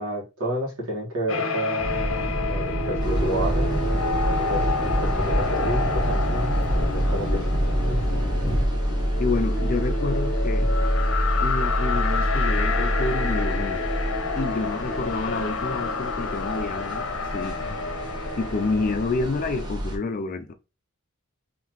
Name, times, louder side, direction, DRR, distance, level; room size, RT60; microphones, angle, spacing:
voice 1, 0.0-3.8 4.4-4.7 5.0-7.6 7.9-8.0, equal, 85° right, 1.8 m, -31 dB
sound 1, 1.3-19.7, left 3 dB, 70° left, 0.7 m, -29 dB
sound 2, 1.8-8.7, equal, 5° left, 0.7 m, -27 dB
sound 3, 3.0-20.0, equal, 20° right, 0.9 m, -28 dB
voice 2, 9.2-10.7 11.4-13.9 14.4-17.1 17.3-17.8 18.4-20.5, left 3 dB, 40° left, 0.4 m, -28 dB
3.8 x 3.2 x 3.1 m
head